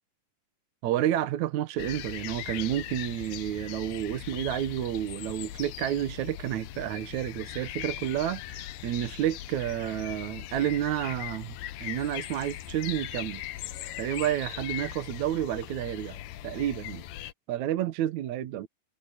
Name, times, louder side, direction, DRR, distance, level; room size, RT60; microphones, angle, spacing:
voice 1, 0.8-13.4 14.0-17.0 17.5-18.7, right 12 dB, 70° right, 2.2 m, -30 dB
sound 1, 1.8-17.3, left 13 dB, 90° left, 2.5 m, -39 dB
omnidirectional pair, 3.8 m